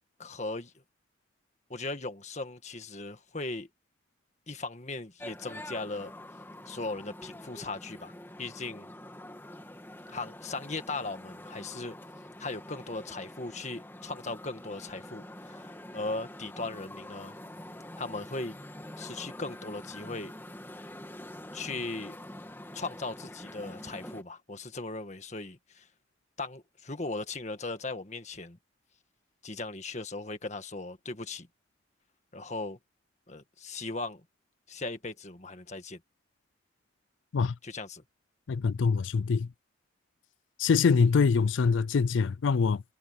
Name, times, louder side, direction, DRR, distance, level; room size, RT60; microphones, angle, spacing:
voice 1, 0.2-0.7 1.7-3.7 4.5-6.1 6.6-8.1 8.4-8.9 10.1-12.0 12.4-17.3 18.0-18.6 19.0-20.3 21.5-22.2 22.7-25.9 26.4-28.6 29.4-31.5 32.3-32.8 33.3-34.2 34.7-36.0 37.6-38.0, left 3 dB, 35° left, 1.7 m, -38 dB
sound 1, 5.2-24.2, left 1 dB, 10° left, 2.7 m, -46 dB
voice 2, 38.5-39.5 40.6-42.8, left 5 dB, 80° left, 0.4 m, -24 dB
head